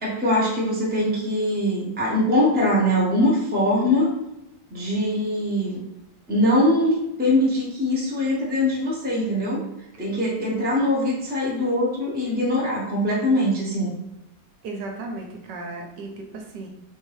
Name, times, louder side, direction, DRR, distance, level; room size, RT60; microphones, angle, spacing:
voice 1, 0.0-4.1 4.7-5.8 6.3-9.6 10.0-13.9, left 1 dB, 5° right, -5 dB, 0.8 m, -22 dB
voice 2, 14.6-16.7, right 2 dB, 75° right, 2 dB, 1.4 m, -35 dB
3.8 x 2.8 x 4.7 m, 0.89 s
omnidirectional pair, 1.9 m